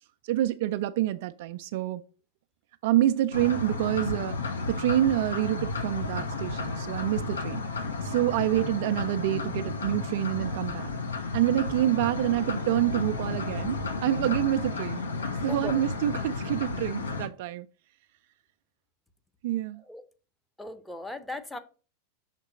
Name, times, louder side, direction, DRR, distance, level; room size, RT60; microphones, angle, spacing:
voice 1, 0.2-2.0 2.8-7.6 8.0-10.9 11.3-15.0 15.4-17.7 19.4-19.8, right 13 dB, 50° right, 0.3 m, -27 dB
sound 1, 3.3-17.3, left 3 dB, 70° left, 0.8 m, -33 dB
voice 2, 15.5-15.8 19.9-20.0 20.6-21.6, left 2 dB, 5° left, 0.7 m, -37 dB
5.8 x 3.6 x 5.1 m
figure-of-eight pair, 90°, 0 cm